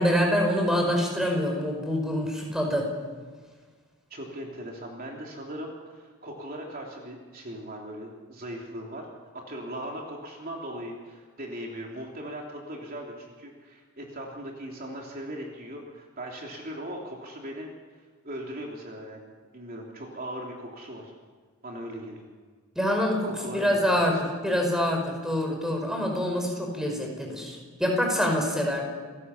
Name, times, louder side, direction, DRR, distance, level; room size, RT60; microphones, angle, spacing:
voice 1, 0.0-2.9 22.8-28.8, equal, ahead, 1 dB, 5.1 m, -26 dB
voice 2, 4.1-9.1 9.3-17.7 18.2-21.1 21.6-22.3 23.2-24.2, equal, 40° right, -1 dB, 3.3 m, -39 dB
29.5 x 17.5 x 7.2 m, 1.5 s
head